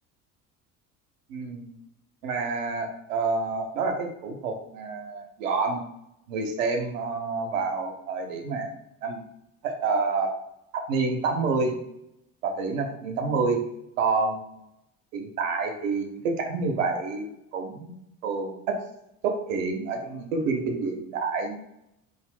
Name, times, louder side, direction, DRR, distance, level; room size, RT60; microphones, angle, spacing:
voice 1, 1.3-1.7 2.2-5.8 6.3-8.7 9.0-9.2 9.6-10.3 10.7-11.7 12.4-13.6 14.0-14.6 15.1-17.9 18.2-18.8 19.2-21.6, right 4 dB, 60° right, 3 dB, 0.7 m, -28 dB
2.5 x 2.2 x 3.4 m, 0.81 s
figure-of-eight pair, 60°, 45 cm